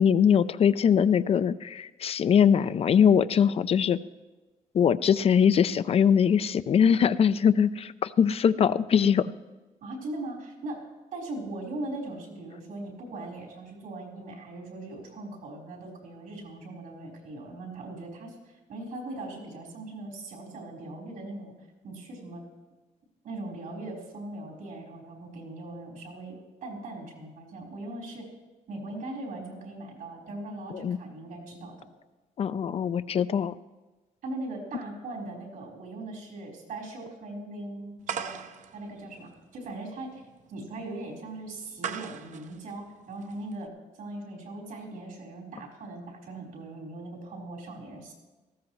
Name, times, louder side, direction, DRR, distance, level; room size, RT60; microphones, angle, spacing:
voice 1, 0.0-4.0 4.7-9.3 30.7-31.0 32.4-33.5, left 7 dB, 45° left, 14 dB, 0.4 m, -22 dB
voice 2, 9.8-10.8 11.1-21.5 21.8-22.4 23.2-28.3 28.7-31.9 34.2-38.4 38.7-40.2 40.5-43.7 44.0-48.1, right 2 dB, 85° right, -2 dB, 4.1 m, -40 dB
sound 1, 38.0-43.7, right 8 dB, 60° right, 0.6 m, -40 dB
18.5 x 14.5 x 3.1 m, 1.2 s
cardioid pair, 120°, 14 cm